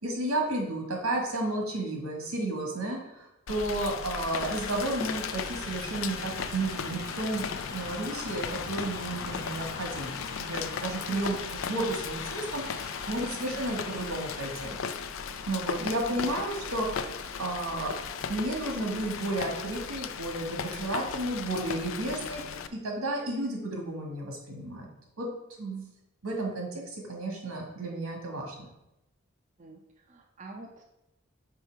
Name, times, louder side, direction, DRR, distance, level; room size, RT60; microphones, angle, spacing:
voice 1, 0.0-14.8 15.5-17.9 18.3-22.4 22.7-24.9 25.2-25.3 25.6-25.9 26.2-28.7, right 2 dB, 80° right, 1 dB, 1.7 m, -32 dB
Rain, 3.5-22.7, left 6 dB, 65° left, 0.4 m, -36 dB
Conversation, 4.3-20.0, left 2 dB, 15° left, 0.9 m, -46 dB
voice 2, 13.0-13.8 15.8-16.3 29.6-30.8, right 2 dB, 35° right, 1 dB, 0.5 m, -47 dB
5.7 x 4.6 x 4.6 m, 0.91 s
head